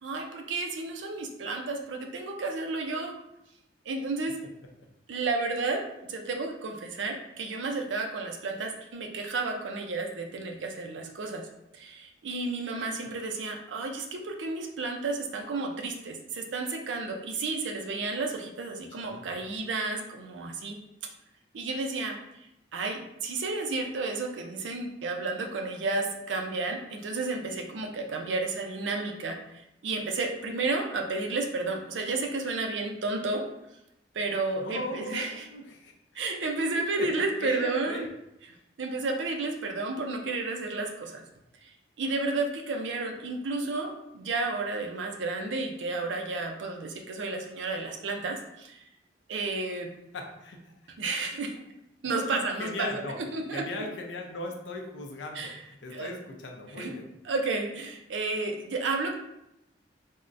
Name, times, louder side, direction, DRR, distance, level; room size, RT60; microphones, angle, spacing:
voice 1, 0.0-3.1 3.9-4.3 5.1-5.8 6.1-11.4 11.7-20.8 21.5-22.2 22.7-29.4 29.8-33.4 34.1-35.5 36.1-38.1 38.8-41.2 41.6-41.7 42.0-48.8 49.3-49.9 51.0-51.5 52.0-53.0 53.3-53.8 55.3-55.6 55.9-56.1 56.7-56.9 57.2-59.2, right 3 dB, 80° right, 3 dB, 0.5 m, -32 dB
voice 2, 18.9-19.3 34.6-35.9 36.8-38.1 38.5-38.6 50.1-50.7 52.3-53.2 53.5-57.1, left 1 dB, 75° left, 2 dB, 0.5 m, -38 dB
3.5 x 2.0 x 2.5 m, 0.86 s
head